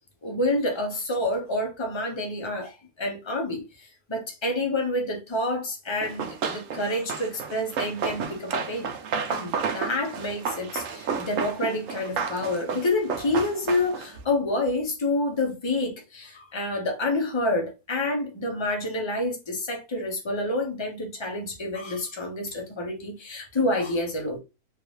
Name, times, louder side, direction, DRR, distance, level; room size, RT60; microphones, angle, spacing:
voice 1, 0.2-8.9 9.3-24.4, left 2 dB, 25° left, 0.8 m, -28 dB
Run, 6.0-14.2, right 5 dB, 65° right, 0.9 m, -32 dB
3.8 x 2.6 x 3.1 m
omnidirectional pair, 1.6 m